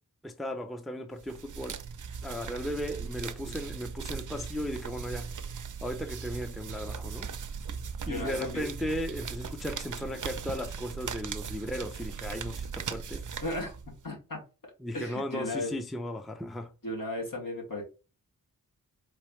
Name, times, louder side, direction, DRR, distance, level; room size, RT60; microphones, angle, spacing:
voice 1, 0.2-1.8 2.2-5.3 5.8-7.3 8.1-13.2 14.8-16.7, equal, ahead, 0.5 m, -36 dB
sound 1, 1.2-14.1, right 6 dB, 60° right, 0.5 m, -39 dB
voice 2, 8.0-8.6 13.4-13.7 14.0-14.4 14.9-15.7 16.8-17.8, left 1 dB, 70° left, 2.3 m, -35 dB
4.6 x 3.4 x 3.2 m
wide cardioid pair, 90°, 35 cm